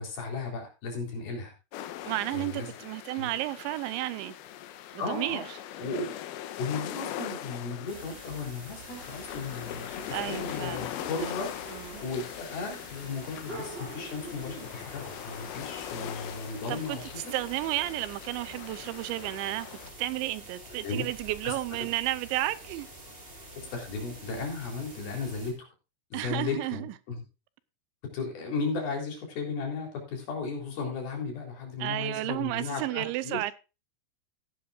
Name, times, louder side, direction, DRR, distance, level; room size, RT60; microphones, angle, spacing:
voice 1, 0.0-1.5 2.3-2.7 3.1-3.3 5.0-5.4 5.8-6.1 6.6-11.7 12.0-17.3 20.8-21.1 21.4-21.5 21.8-21.9 23.6-25.7 26.1-27.2 28.1-33.4, left 4 dB, 55° left, 5.5 m, -35 dB
sound 1, 1.7-19.9, left 12 dB, 75° left, 2.4 m, -41 dB
voice 2, 2.0-4.4 4.9-5.4 10.1-11.1 11.7-12.0 16.7-19.7 20.0-22.9 26.1-26.9 31.8-33.5, right 16 dB, 85° right, 3.0 m, -32 dB
sound 2, 7.9-25.5, right 1 dB, 15° right, 2.6 m, -46 dB
15.5 x 10.5 x 2.5 m
omnidirectional pair, 5.3 m